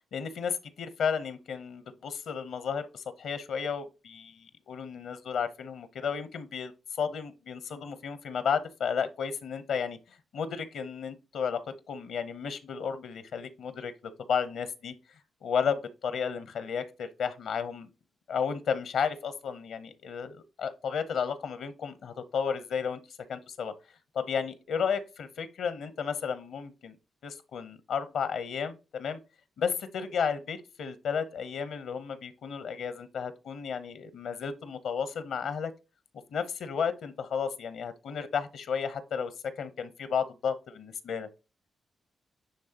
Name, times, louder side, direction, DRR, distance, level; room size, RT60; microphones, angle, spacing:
voice 1, 0.1-6.7 7.0-14.9 15.4-17.9 18.3-23.0 23.3-23.7 24.1-27.0 27.2-29.2 29.6-35.7 36.3-41.3, left 6 dB, 75° left, 0.8 m, -33 dB
9.8 x 3.4 x 2.9 m
supercardioid pair, 45°, 0 cm